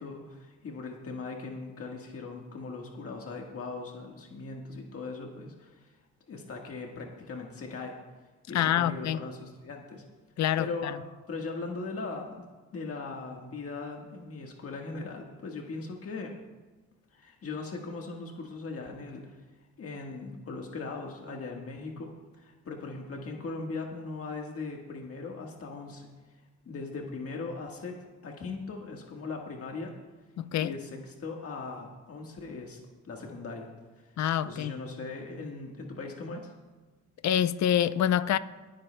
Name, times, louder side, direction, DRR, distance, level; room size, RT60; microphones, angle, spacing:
voice 1, 0.0-5.9 6.3-8.0 8.5-10.0 10.6-11.0 11.3-16.3 17.1-19.3 19.8-26.1 26.6-29.9 30.6-33.7 34.0-34.1 34.4-36.5, left 3 dB, 50° left, 1.5 m, -39 dB
voice 2, 8.5-9.2 10.4-10.7 30.4-30.7 34.2-34.7 37.2-38.4, left 10 dB, 65° left, 0.6 m, -26 dB
24.0 x 9.1 x 2.2 m
cardioid pair, 90°, 30 cm